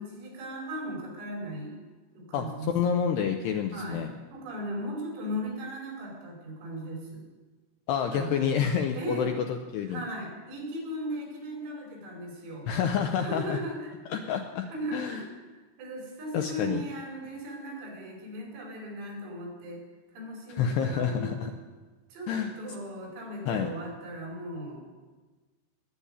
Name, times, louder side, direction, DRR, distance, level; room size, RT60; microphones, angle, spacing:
voice 1, 0.0-1.8 2.1-2.7 3.7-4.0 4.3-7.2 8.1-8.4 8.9-9.3 9.9-12.7 13.2-14.4 14.7-15.3 15.6-19.8 20.1-21.3 22.1-22.3 22.6-24.8, right 1 dB, 80° right, -1 dB, 7.4 m, -37 dB
voice 2, 2.3-4.1 7.9-10.0 12.7-13.6 14.1-15.2 16.3-16.8 20.6-21.5 22.3-22.5 23.5-23.7, left 7 dB, 80° left, 4 dB, 2.5 m, -28 dB
20.5 x 7.0 x 9.8 m, 1.3 s
omnidirectional pair, 5.8 m